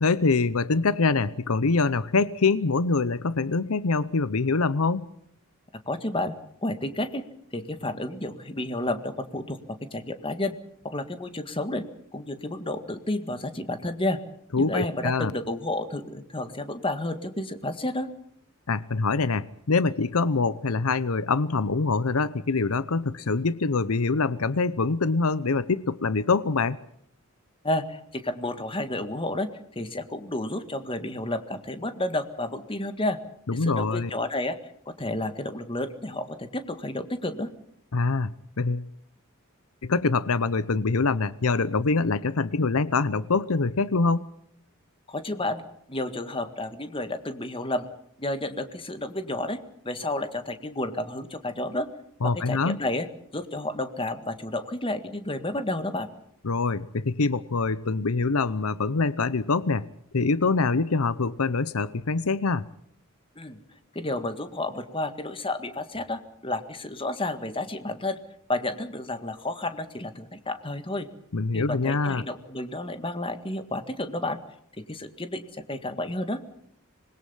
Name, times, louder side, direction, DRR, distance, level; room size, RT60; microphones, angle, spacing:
voice 1, 0.0-5.1 14.5-15.3 18.7-26.8 33.5-34.1 37.9-38.9 39.8-44.3 52.2-52.8 56.4-59.9 60.1-62.6 71.3-72.2, left 4 dB, 85° left, 17 dB, 0.8 m, -24 dB
voice 2, 5.9-6.4 6.6-7.2 7.5-9.6 9.9-10.6 10.8-11.8 12.1-14.2 14.6-18.1 27.6-29.5 29.7-33.2 33.5-34.6 34.9-37.5 45.1-45.6 45.9-47.9 48.2-49.6 49.9-51.9 52.2-53.1 53.3-56.1 63.4-63.6 63.9-68.2 68.5-71.1 71.5-74.4 74.9-76.4, left 1 dB, 25° left, 9 dB, 1.8 m, -31 dB
26.0 x 21.0 x 5.7 m, 0.68 s
head